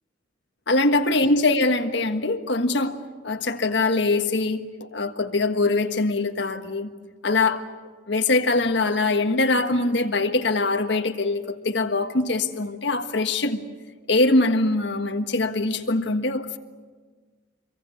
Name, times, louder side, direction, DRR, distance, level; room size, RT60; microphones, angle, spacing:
voice 1, 0.7-3.0 3.2-6.9 7.2-7.6 8.1-13.6 14.1-16.6, left 2 dB, 65° left, 1.5 m, -23 dB
25.5 x 23.0 x 8.6 m
head